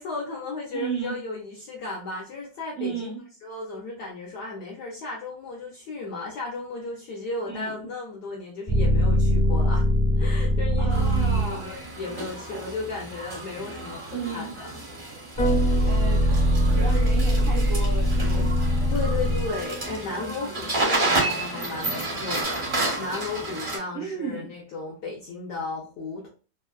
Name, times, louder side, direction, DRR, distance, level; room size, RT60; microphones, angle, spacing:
voice 1, 0.0-3.2 3.4-9.9 10.2-14.7 15.7-16.0 18.9-26.3, left 3 dB, 75° left, -2 dB, 0.9 m, -35 dB
voice 2, 0.7-1.2 2.8-3.2 7.5-7.7 10.8-11.7 14.1-14.5 15.8-16.3 16.6-18.5 20.2-20.7 23.9-24.5, right 4 dB, 85° right, -4 dB, 0.7 m, -33 dB
sound 1, 8.7-11.8 15.4-19.9, equal, 30° left, 0.4 m, -22 dB
sound 2, 10.9-23.8, right 2 dB, 45° right, 0.6 m, -31 dB
3.4 x 2.1 x 2.2 m, 0.35 s
omnidirectional pair, 2.4 m